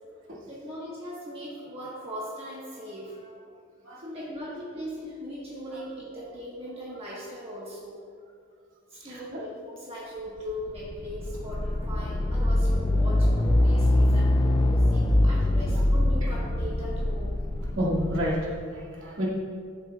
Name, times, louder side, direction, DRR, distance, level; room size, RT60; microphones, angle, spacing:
voice 1, 0.5-3.5 4.0-8.0 8.9-17.3, equal, 30° right, -7 dB, 1.3 m, -39 dB
voice 2, 3.8-4.2 9.0-9.4 15.7-15.8 17.8-19.2, equal, 70° right, -6 dB, 2.2 m, -30 dB
sound 1, 10.5-18.5, left 1 dB, 20° left, 0.4 m, -23 dB
13.0 x 7.3 x 2.3 m, 2.2 s
head